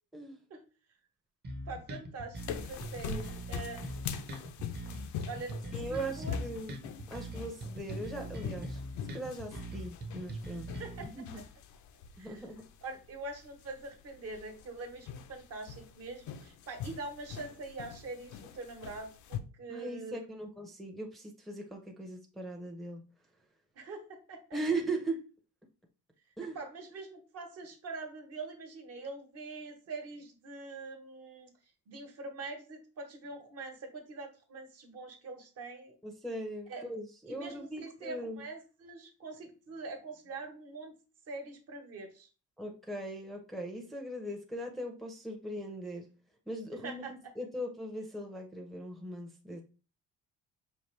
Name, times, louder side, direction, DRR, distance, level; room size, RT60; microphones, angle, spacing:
sound 1, 1.4-11.0, right 1 dB, 35° right, 0.9 m, -41 dB
voice 1, 1.7-4.1 5.2-6.4 10.8-11.4 12.2-12.5 12.8-20.2 23.7-24.6 26.4-31.5 31.9-36.0 36.7-36.8 37.3-40.9 41.3-42.3 46.8-47.3, right 3 dB, 50° right, 4 dB, 1.1 m, -44 dB
sound 2, 2.4-19.4, left 7 dB, 70° left, 0.6 m, -44 dB
voice 2, 5.7-6.7 7.1-8.8 9.1-10.7 11.1-11.4 12.2-12.6 19.7-23.0 24.5-25.2 26.4-26.6 36.0-38.4 42.6-46.1 46.5-49.6, right 1 dB, ahead, 1 dB, 0.6 m, -39 dB
5.4 x 2.5 x 3.2 m, 0.35 s
cardioid pair, 110°, 31 cm